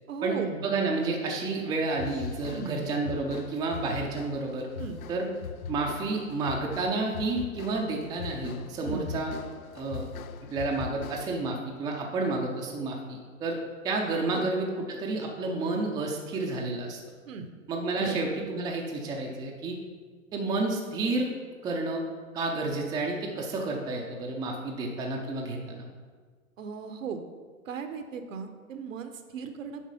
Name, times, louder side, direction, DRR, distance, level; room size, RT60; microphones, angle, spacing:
voice 1, 0.1-0.7 2.5-3.0 4.8-5.0 8.8-9.2 14.3-14.5 17.3-17.5 18.0-18.2 26.6-27.2 27.7-29.9, right 5 dB, 65° right, 7 dB, 1.0 m, -36 dB
voice 2, 0.6-4.7 5.1-5.3 5.7-9.3 9.7-10.1 10.5-13.6 13.8-17.0 17.7-19.8 20.3-21.3 21.6-22.0 22.3-25.8, right 3 dB, 10° right, 0 dB, 0.6 m, -30 dB
sound 1, 1.9-11.5, left 6 dB, 75° left, 0.6 m, -41 dB
7.4 x 4.7 x 5.5 m, 1.6 s
figure-of-eight pair, 115°, 43 cm